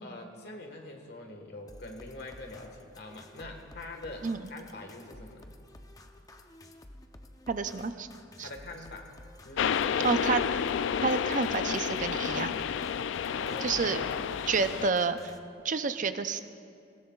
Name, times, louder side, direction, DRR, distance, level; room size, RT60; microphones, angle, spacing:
voice 1, 0.0-5.5 8.4-9.1 9.4-10.1 13.3-14.3, left 2 dB, 60° left, 3 dB, 1.5 m, -44 dB
sound 1, 1.7-15.4, left 1 dB, 20° left, 0.6 m, -52 dB
voice 2, 7.5-8.1 8.4-8.5 10.0-10.4 11.0-12.6 13.6-14.0 14.5-15.3 15.6-16.4, right 4 dB, 45° right, 10 dB, 0.5 m, -29 dB
sound 2, 9.6-14.9, left 7 dB, 85° left, 0.3 m, -30 dB
20.0 x 17.5 x 2.4 m, 2.4 s
head